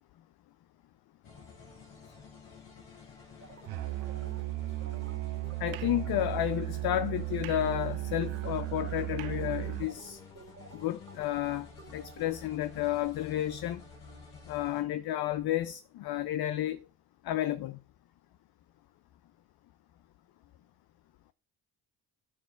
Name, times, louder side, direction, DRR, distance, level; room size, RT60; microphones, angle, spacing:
sound 1, 1.2-14.8, left 5 dB, 70° left, 2.5 m, -51 dB
sound 2, 3.4-6.6 6.9-7.2 7.5-12.3, right 4 dB, 30° right, 1.4 m, -52 dB
Musical instrument, 3.7-10.0, right 18 dB, 70° right, 0.6 m, -35 dB
voice 1, 5.6-10.2 10.7-13.8 14.5-16.8 17.2-17.8, left 13 dB, 50° left, 0.5 m, -31 dB
13.0 x 4.8 x 2.4 m
hypercardioid pair, 50°, 49 cm